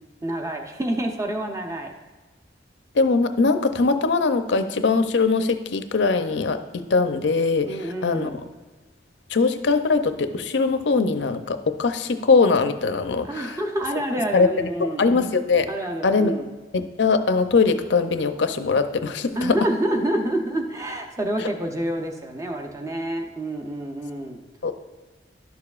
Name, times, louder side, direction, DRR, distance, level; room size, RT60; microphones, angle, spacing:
voice 1, 0.2-1.9 7.6-8.5 13.3-15.1 15.7-16.5 19.4-24.4, right 1 dB, 20° right, 2 dB, 0.7 m, -28 dB
voice 2, 2.9-8.3 9.3-13.6 14.3-14.5 14.8-15.7 16.0-16.3 16.7-19.6 24.6-24.7, left 4 dB, 85° left, 9 dB, 0.5 m, -21 dB
11.5 x 6.7 x 2.4 m, 1.3 s
head